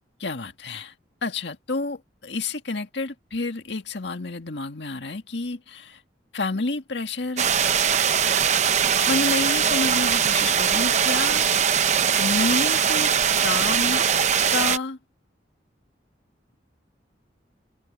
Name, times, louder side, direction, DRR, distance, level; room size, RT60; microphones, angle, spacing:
voice 1, 0.2-0.9 1.2-6.0 6.3-7.5 9.1-11.5 12.2-13.1 13.4-14.0 14.5-15.0, left 3 dB, 75° left, 1.9 m, -29 dB
sound 1, 7.4-14.8, right 7 dB, 40° right, 0.8 m, -21 dB
open air
head